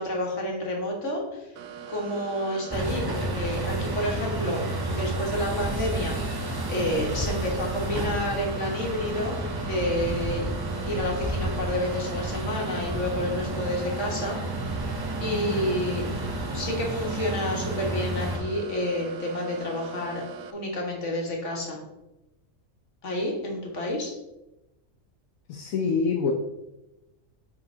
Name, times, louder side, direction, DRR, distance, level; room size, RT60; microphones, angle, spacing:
voice 1, 0.0-1.5 1.9-4.6 4.9-10.5 10.8-14.4 14.7-15.0 15.2-16.0 16.5-20.2 20.5-21.8 23.0-24.1, left 1 dB, 60° left, -1 dB, 1.9 m, -29 dB
sound 1, 1.6-20.5, right 7 dB, 85° right, 1.0 m, -41 dB
sound 2, 2.7-18.4, right 1 dB, 20° right, 0.8 m, -31 dB
voice 2, 25.5-26.3, left 5 dB, 85° left, 1 dB, 1.1 m, -25 dB
7.3 x 4.7 x 3.8 m, 0.96 s
omnidirectional pair, 1.4 m